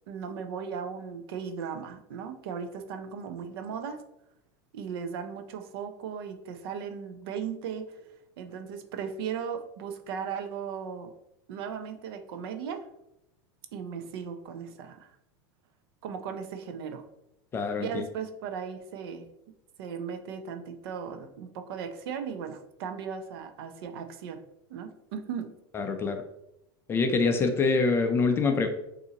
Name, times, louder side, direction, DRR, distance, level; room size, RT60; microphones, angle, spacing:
voice 1, 0.1-4.0 4.7-8.0 8.4-11.1 11.5-12.9 13.7-15.2 16.0-17.1 17.8-19.3 19.8-24.4 24.7-25.5, right 7 dB, 70° right, 7 dB, 0.6 m, -37 dB
voice 2, 17.5-17.9 25.7-26.2 26.9-28.7, left 4 dB, 20° left, 6 dB, 0.4 m, -25 dB
6.9 x 2.7 x 2.8 m, 0.82 s
supercardioid pair, 150°, 13 cm